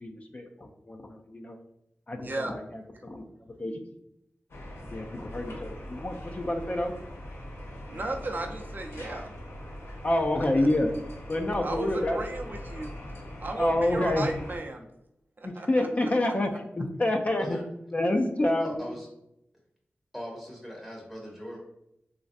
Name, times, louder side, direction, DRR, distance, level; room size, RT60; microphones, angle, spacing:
voice 1, 0.0-1.6 2.1-3.2 3.6-3.8 4.9-6.9 10.0-10.9 11.3-12.2 13.6-14.3 15.4-17.6 17.9-18.8, left 1 dB, 35° left, 3 dB, 0.4 m, -28 dB
voice 2, 2.2-2.5 7.9-9.3 10.6-10.7 11.6-13.0 13.4-14.9 15.4-16.3, right 2 dB, 45° right, 2 dB, 0.5 m, -35 dB
sound 1, 4.5-14.6, equal, 75° left, 0.6 m, -41 dB
voice 3, 17.3-17.6 18.6-19.1 20.1-21.6, equal, ahead, -2 dB, 0.7 m, -39 dB
3.0 x 2.5 x 2.5 m, 0.81 s
cardioid pair, 55°, 4 cm